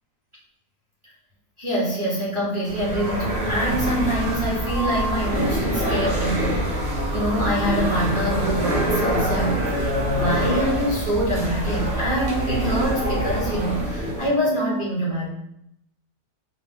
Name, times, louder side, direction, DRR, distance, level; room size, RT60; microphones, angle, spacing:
voice 1, 1.6-6.7 7.1-9.6 10.1-15.3, right 1 dB, 25° right, -6 dB, 0.7 m, -25 dB
sound 1, 2.6-14.3, equal, 90° right, 1.9 m, -25 dB
4.8 x 2.1 x 3.6 m, 0.78 s
omnidirectional pair, 1.7 m